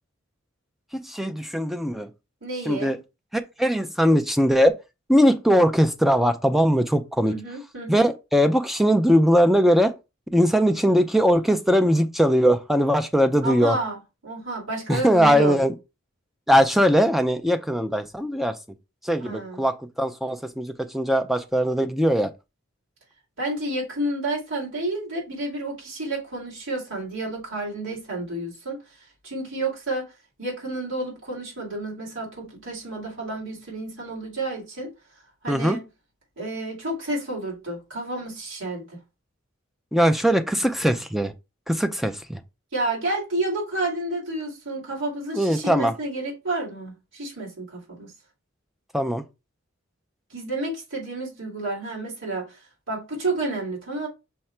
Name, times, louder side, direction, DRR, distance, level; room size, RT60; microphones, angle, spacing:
voice 1, 0.9-2.1 2.7-3.0 3.3-4.7 5.1-7.3 7.9-9.9 10.3-13.8 14.9-15.7 16.5-18.5 19.0-22.3 35.5-35.8 39.9-41.3 41.7-42.4 45.3-45.9 48.9-49.2, equal, ahead, 0.4 m, -20 dB
voice 2, 2.4-2.9 7.2-8.1 13.4-15.6 19.2-19.6 23.4-28.8 29.2-30.1 30.4-34.9 35.4-35.9 36.4-39.0 42.7-48.1 50.3-52.6 52.9-54.1, right 2 dB, 70° right, 2.2 m, -30 dB
5.7 x 2.2 x 4.3 m
head